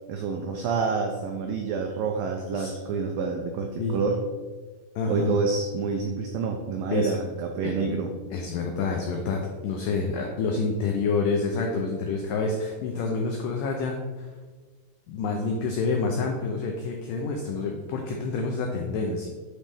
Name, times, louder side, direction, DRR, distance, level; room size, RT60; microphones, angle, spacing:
voice 1, 0.1-4.2 5.1-8.1, right 4 dB, 90° right, 3 dB, 1.9 m, -28 dB
voice 2, 5.0-5.4 6.9-7.1 7.6-7.7 8.3-14.3 15.1-19.3, left 4 dB, 90° left, 2 dB, 1.9 m, -28 dB
9.1 x 4.1 x 3.4 m, 1.4 s
omnidirectional pair, 4.6 m